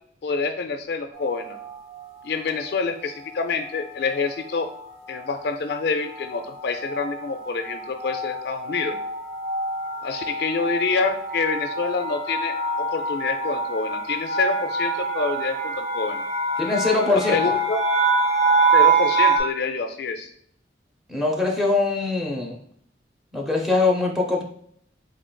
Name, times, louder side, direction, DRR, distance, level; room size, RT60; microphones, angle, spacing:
voice 1, 0.2-1.6 2.2-4.7 5.1-8.9 10.0-16.3 17.1-17.8 18.7-20.3, left 4 dB, 65° left, 6 dB, 0.4 m, -27 dB
sound 1, 1.3-1.7 2.5-2.9 3.2-3.4 3.6-19.4, right 3 dB, 35° right, 1.1 m, -26 dB
voice 2, 16.6-17.4 21.1-22.6 23.3-24.5, left 3 dB, ahead, -1 dB, 0.6 m, -22 dB
3.7 x 3.7 x 2.2 m, 0.66 s
head